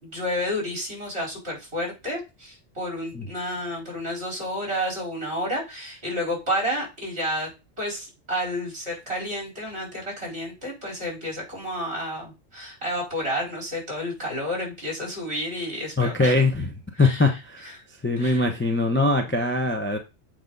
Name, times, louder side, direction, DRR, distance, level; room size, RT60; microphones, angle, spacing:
voice 1, 0.0-7.5 7.8-16.4 16.9-17.4 17.6-17.8 18.2-18.4, equal, 55° right, -1 dB, 4.6 m, -30 dB
voice 2, 16.0-16.7 17.0-17.6 18.0-20.0, left 2 dB, 10° left, 3 dB, 0.7 m, -22 dB
7.9 x 5.0 x 4.0 m, 0.27 s
omnidirectional pair, 1.3 m